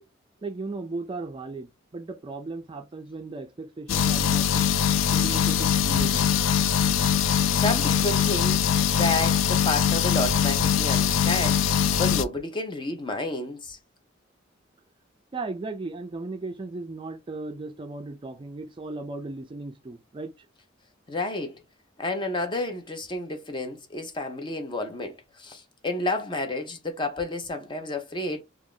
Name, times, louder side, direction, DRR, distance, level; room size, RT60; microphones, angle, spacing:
voice 1, 0.4-4.7 5.1-6.4 15.3-20.5, right 3 dB, 25° right, 0.3 m, -36 dB
sound 1, 3.9-12.2, left 8 dB, 80° left, 0.3 m, -22 dB
voice 2, 7.6-8.6 8.9-11.6 12.0-13.8 21.1-21.6 22.0-28.4, left 2 dB, 25° left, 0.5 m, -30 dB
2.4 x 2.4 x 3.6 m
head